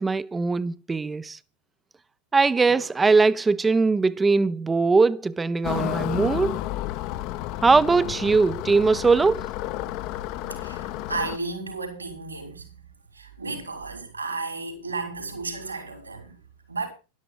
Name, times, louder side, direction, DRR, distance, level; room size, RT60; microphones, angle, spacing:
voice 1, 0.0-1.4 2.3-6.6 7.6-9.5, right 4 dB, 10° right, 0.7 m, -21 dB
sound 1, 5.6-11.4, left 15 dB, 40° left, 0.9 m, -31 dB
voice 2, 9.8-12.8 13.1-16.4 16.7-16.9, right 3 dB, 80° right, 6.0 m, -34 dB
13.0 x 12.0 x 5.2 m
figure-of-eight pair, 90°, 0 cm